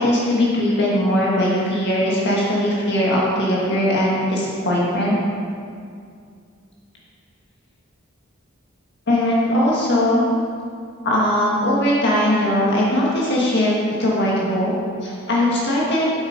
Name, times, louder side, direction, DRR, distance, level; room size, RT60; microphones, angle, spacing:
voice 1, 0.0-5.2 9.1-10.3 11.0-13.7 14.0-14.7 15.0-16.1, left 1 dB, 55° left, -5 dB, 1.7 m, -19 dB
8.3 x 7.2 x 5.3 m, 2.3 s
head